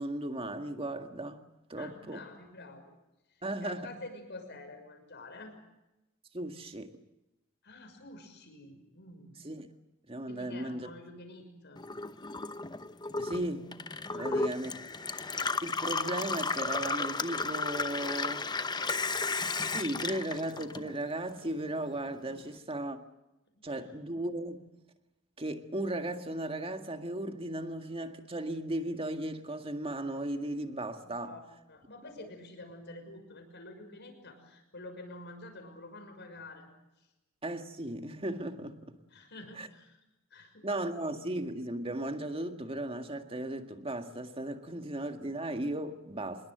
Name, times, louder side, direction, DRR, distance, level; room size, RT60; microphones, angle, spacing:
voice 1, 0.0-1.4 1.7-2.2 3.4-3.9 6.3-6.9 9.4-9.7 10.1-10.9 13.2-13.7 14.1-14.7 15.6-18.5 19.6-23.0 23.6-24.6 25.4-31.3 37.4-39.0 39.6-39.7 40.6-46.5, right 1 dB, 25° right, 1.9 m, -36 dB
voice 2, 1.8-2.9 3.3-5.5 7.6-9.4 10.3-11.8 14.1-14.5 23.7-23.9 31.0-36.7 37.0-37.1 39.1-40.0 40.3-40.7, left 2 dB, 55° left, 6.2 m, -48 dB
Gurgling / Water tap faucet / Sink (filling or washing), 11.8-21.3 21.6-22.5, left 3 dB, 20° left, 0.8 m, -34 dB
26.0 x 21.5 x 7.9 m
head